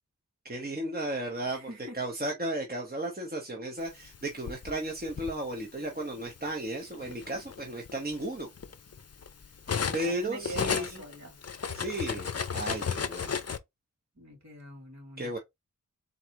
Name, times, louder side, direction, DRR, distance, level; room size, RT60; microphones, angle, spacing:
voice 1, 0.4-1.7 1.9-8.5 9.9-11.0 11.7-13.4 15.2-15.4, right 1 dB, 30° right, 1.0 m, -34 dB
voice 2, 1.5-2.0 9.8-11.4 14.1-15.4, right 1 dB, 55° right, 2.9 m, -43 dB
Cutlery silverware, 4.0-5.3 6.3-6.5 6.9-10.1 10.4-13.6, left 6 dB, 50° left, 0.5 m, -34 dB
4.0 x 2.3 x 4.5 m
wide cardioid pair, 55°, 33 cm